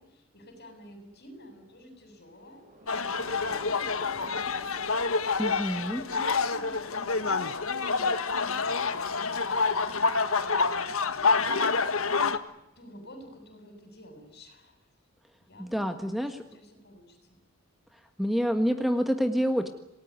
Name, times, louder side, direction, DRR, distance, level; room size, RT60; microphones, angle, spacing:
voice 1, 0.0-4.3 5.8-11.9 12.8-14.9 15.4-17.4, equal, 50° left, 7 dB, 7.6 m, -51 dB
Thunder / Rain, 2.3-12.9, equal, 40° right, 7.6 m, -56 dB
sound 1, 2.9-12.4, left 4 dB, 75° left, 1.7 m, -27 dB
voice 2, 5.4-6.0 15.6-16.4 18.2-19.7, equal, ahead, 7 dB, 1.6 m, -27 dB
28.0 x 18.5 x 9.6 m, 0.85 s
head